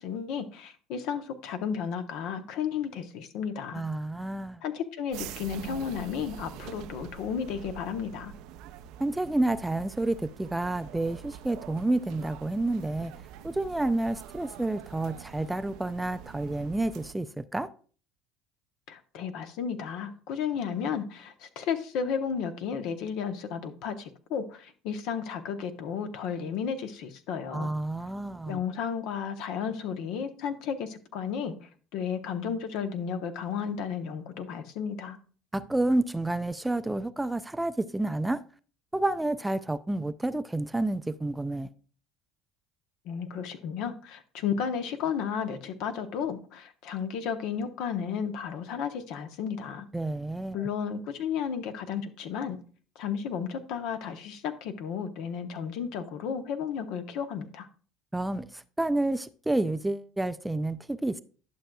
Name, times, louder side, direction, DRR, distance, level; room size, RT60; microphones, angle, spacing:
voice 1, 0.0-3.8 4.6-8.3 18.9-27.7 28.5-35.2 43.0-49.9 50.5-52.6 53.0-57.7, left 7 dB, 70° left, 0.8 m, -33 dB
voice 2, 3.7-4.6 9.0-13.1 13.4-17.7 27.5-28.6 35.5-38.4 38.9-41.7 49.9-50.7 58.1-61.2, right 2 dB, 10° right, 0.4 m, -29 dB
sound 1, 5.1-17.1, right 10 dB, 70° right, 0.5 m, -45 dB
11.0 x 6.2 x 2.3 m
hypercardioid pair, 75°, 0 cm